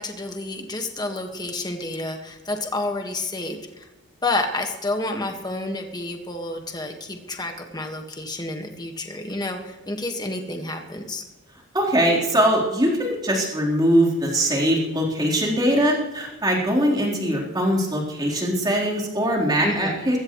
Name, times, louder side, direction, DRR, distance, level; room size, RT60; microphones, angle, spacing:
voice 1, 0.0-3.9 4.2-11.2 19.6-19.9, left 2 dB, 20° left, 4 dB, 1.6 m, -29 dB
voice 2, 11.7-20.2, equal, 20° right, -3 dB, 3.9 m, -21 dB
21.0 x 16.5 x 3.2 m, 1.1 s
head